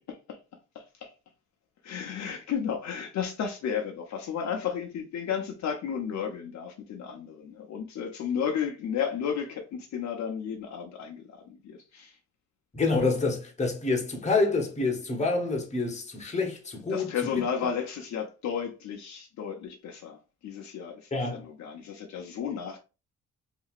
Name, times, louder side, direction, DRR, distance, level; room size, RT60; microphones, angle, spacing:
voice 1, 0.7-1.1 1.8-12.1 16.9-20.2 20.4-22.8, left 7 dB, 65° left, 0.8 m, -33 dB
voice 2, 12.7-17.1 21.1-21.4, left 3 dB, 25° left, 1.0 m, -27 dB
2.9 x 2.7 x 2.4 m
cardioid pair, 90°, 30 cm